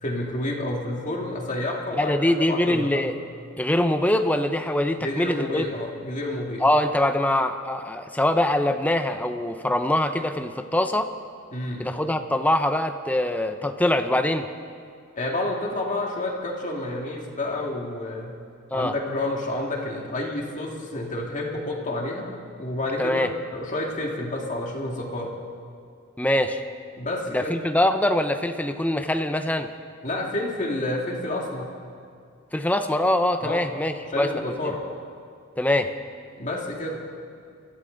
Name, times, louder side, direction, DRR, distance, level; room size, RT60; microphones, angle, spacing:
voice 1, 0.0-2.2 2.5-3.0 5.0-6.6 11.5-11.9 15.2-18.3 18.7-25.3 27.0-27.6 30.0-31.7 33.4-33.6 34.1-34.8 36.4-37.0, left 1 dB, 35° left, -1 dB, 2.2 m, -29 dB
voice 2, 2.0-3.1 3.6-5.7 6.6-11.1 11.8-14.5 18.7-18.9 23.0-23.3 26.2-26.6 27.3-29.7 32.5-34.3 34.6-34.7 35.6-35.9, left 1 dB, 5° left, 8 dB, 0.6 m, -23 dB
23.5 x 15.0 x 3.9 m, 2.3 s
head